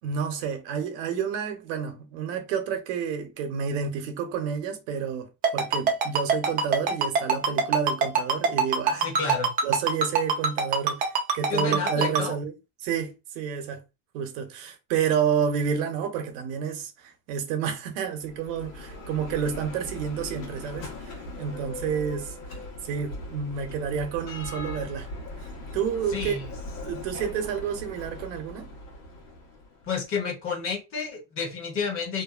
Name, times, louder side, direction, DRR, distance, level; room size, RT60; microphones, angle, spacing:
voice 1, 0.0-9.1 9.6-12.5 12.8-13.8 14.1-22.4 22.8-25.1 25.7-26.4 26.8-28.7, right 7 dB, 70° right, 0.8 m, -30 dB
Ringtone, 5.4-12.2, right 5 dB, 25° right, 0.3 m, -22 dB
voice 2, 8.9-9.5 11.5-12.3 26.1-26.5 29.9-32.2, left 5 dB, 35° left, 0.7 m, -30 dB
Bell, 18.1-30.0, left 1 dB, 85° left, 1.0 m, -40 dB
2.6 x 2.2 x 2.3 m
cardioid pair, 150°, 40 cm